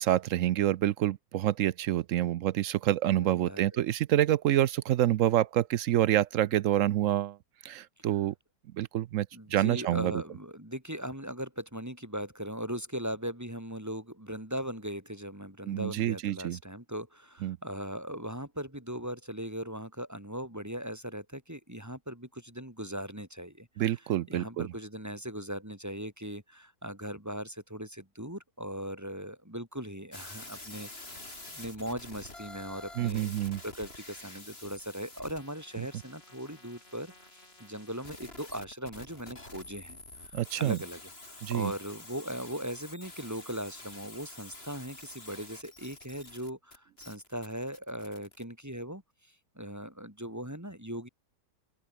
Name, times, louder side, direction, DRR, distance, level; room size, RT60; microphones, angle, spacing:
voice 1, 0.0-7.4 7.6-8.3 8.8-10.2 15.7-16.6 17.4-17.6 23.8-24.7 33.0-33.6 40.3-40.8 41.4-41.7, right 12 dB, 65° right, 0.8 m, -27 dB
voice 2, 3.2-3.8 9.3-23.7 24.3-31.2 31.5-33.3 33.6-40.0 40.2-41.0 41.5-49.0 49.6-51.1, equal, 10° right, 4.0 m, -39 dB
sound 1, 30.1-48.4, left 2 dB, 35° left, 4.6 m, -48 dB
open air
omnidirectional pair, 1.9 m